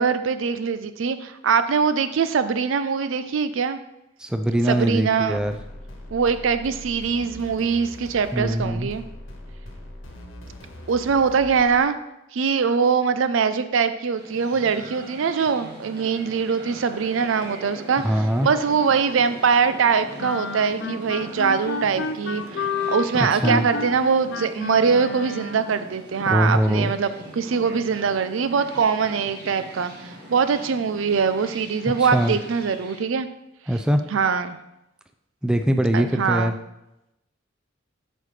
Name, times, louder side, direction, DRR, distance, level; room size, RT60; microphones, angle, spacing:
voice 1, 0.0-3.8 4.7-5.4 6.1-9.0 10.9-12.0 12.3-33.3 34.1-34.6 35.9-36.5, right 6 dB, 75° right, 11 dB, 0.4 m, -22 dB
voice 2, 4.2-5.6 8.3-8.9 18.0-18.5 23.2-23.7 26.3-26.9 32.0-32.4 33.7-34.0 35.4-36.6, right 1 dB, 5° right, 6 dB, 0.3 m, -22 dB
sound 1, 5.3-11.8, left 1 dB, 85° left, 1.4 m, -41 dB
sound 2, 14.1-33.0, right 1 dB, 55° right, 1.6 m, -41 dB
sound 3, 20.2-25.8, left 5 dB, 65° left, 0.4 m, -31 dB
8.4 x 5.0 x 3.2 m, 0.89 s
head